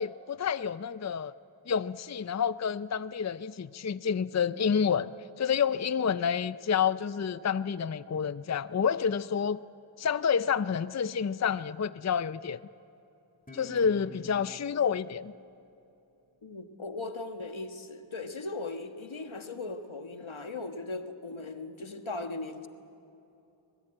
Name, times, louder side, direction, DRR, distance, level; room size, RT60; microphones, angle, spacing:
voice 1, 0.0-1.3 1.7-5.1 5.4-9.6 10.0-12.6 13.5-15.3, left 7 dB, 35° left, 15 dB, 0.5 m, -29 dB
Guitar, 13.5-16.7, left 1 dB, 20° left, 3.0 m, -52 dB
voice 2, 16.4-22.7, left 3 dB, 85° left, 7 dB, 1.5 m, -38 dB
25.0 x 21.0 x 8.8 m, 2.9 s
wide cardioid pair, 50°, 46 cm